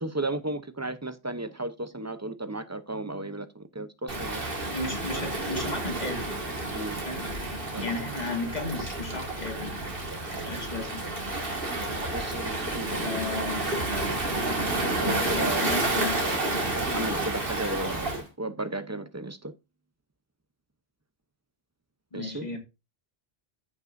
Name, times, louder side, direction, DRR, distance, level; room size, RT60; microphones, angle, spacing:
voice 1, 0.0-4.4 6.7-7.0 7.7-8.0 10.3-10.5 12.1-13.1 15.0-15.8 16.7-19.5 22.1-22.5, right 2 dB, 20° right, 0.6 m, -34 dB
Waves surf, 4.1-18.2, right 2 dB, 55° right, 2.2 m, -30 dB
voice 2, 4.7-6.4 7.1-7.2 7.8-9.9 10.4-11.1 13.0-13.7 15.3-16.2 22.1-22.6, left 3 dB, 40° left, 2.0 m, -34 dB
15.0 x 5.4 x 2.6 m
omnidirectional pair, 1.1 m